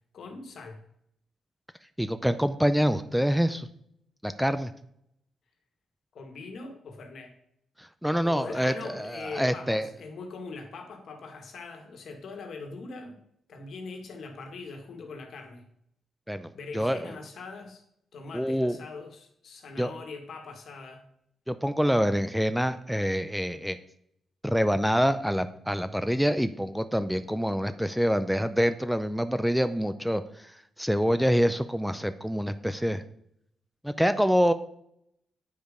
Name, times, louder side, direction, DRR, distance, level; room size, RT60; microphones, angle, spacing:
voice 1, 0.1-0.8 6.1-7.3 8.2-13.2 13.5-15.6 16.5-17.8 18.1-21.0, left 4 dB, 65° left, 4 dB, 1.8 m, -42 dB
voice 2, 2.0-3.7 4.2-4.7 7.8-9.9 16.3-16.5 16.7-17.1 18.3-18.8 19.8-19.9 21.5-23.8 24.4-30.5 30.8-33.0 33.8-34.5, equal, ahead, 11 dB, 0.5 m, -26 dB
9.4 x 5.1 x 5.1 m, 0.72 s
cardioid pair, 80°, 0 cm